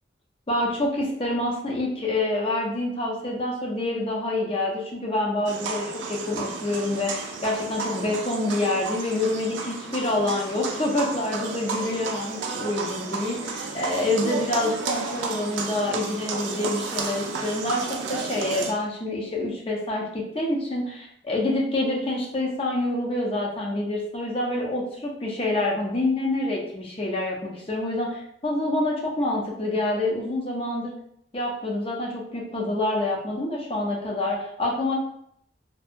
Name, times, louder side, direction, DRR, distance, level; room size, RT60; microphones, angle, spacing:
voice 1, 0.5-30.9 31.3-34.9, left 2 dB, 30° left, -2 dB, 0.5 m, -27 dB
sound 1, 5.5-18.7, right 4 dB, 85° right, 0.4 m, -32 dB
2.6 x 2.3 x 2.5 m, 0.70 s
head